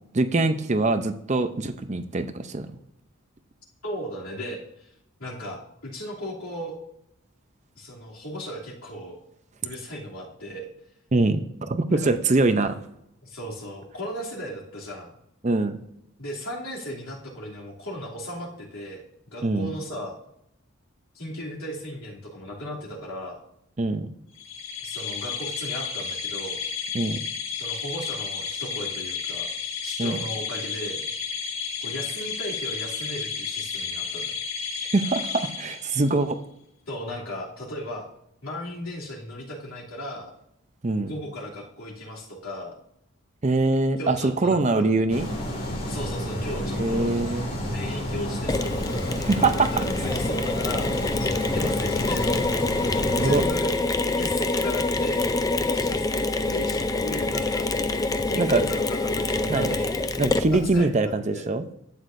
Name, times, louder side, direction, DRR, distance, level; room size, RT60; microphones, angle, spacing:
voice 1, 0.1-2.7 11.1-12.7 15.4-15.8 19.4-19.7 23.8-24.1 26.9-27.2 30.0-30.2 34.8-36.4 40.8-41.1 43.4-45.3 46.7-47.5 49.3-49.7 53.1-53.4 58.4-58.6 59.5-59.7 60.2-61.7, right 2 dB, 30° right, 9 dB, 0.5 m, -23 dB
voice 2, 3.8-4.9 5.2-6.7 7.8-9.2 9.6-10.7 11.9-12.1 13.2-15.1 16.2-20.1 21.1-23.4 24.8-26.6 27.5-29.5 29.8-31.0 31.8-34.4 36.9-38.1 38.4-40.3 41.0-42.7 44.0-44.9 45.9-47.1 47.7-50.9 51.4-52.6 53.2-53.8 54.2-55.3 55.7-57.7 58.3-59.9 60.5-61.5, equal, 80° left, -4 dB, 2.8 m, -36 dB
sound 1, 24.4-36.2, left 5 dB, 65° left, 1.4 m, -32 dB
sound 2, 45.1-53.5, equal, 45° left, 2.2 m, -30 dB
Mechanisms, 48.5-60.8, left 2 dB, 15° left, 0.3 m, -26 dB
11.5 x 8.2 x 2.6 m, 0.78 s
head